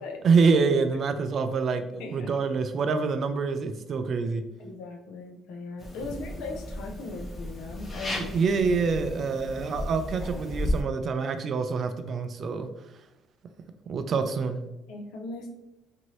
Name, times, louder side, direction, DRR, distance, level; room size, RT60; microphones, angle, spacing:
voice 1, 0.2-4.4 8.2-12.7 13.9-14.6, right 4 dB, 40° right, 9 dB, 0.3 m, -26 dB
voice 2, 2.0-2.3 4.6-8.4 14.9-15.5, left 3 dB, 90° left, 1 dB, 0.6 m, -38 dB
sound 1, 5.8-10.8, left 1 dB, 15° left, 0.6 m, -34 dB
2.8 x 2.6 x 3.0 m, 0.94 s
cardioid pair, 140°, 0 cm